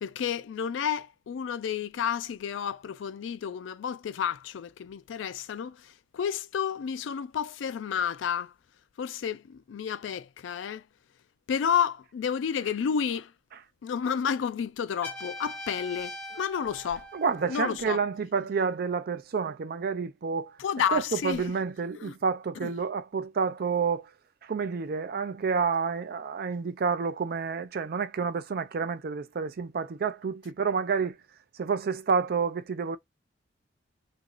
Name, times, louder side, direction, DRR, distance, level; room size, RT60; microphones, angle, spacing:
voice 1, 0.0-8.5 9.0-10.8 11.5-13.3 13.8-17.1 17.5-18.0 20.6-21.4 22.0-22.1 22.6-22.7, left 7 dB, 85° left, 0.3 m, -31 dB
Trumpet, 15.0-17.9, left 1 dB, 10° left, 1.1 m, -41 dB
voice 2, 17.1-20.5 20.9-24.1 24.4-31.1 31.6-33.0, right 5 dB, 55° right, 0.4 m, -29 dB
2.9 x 2.6 x 3.7 m
head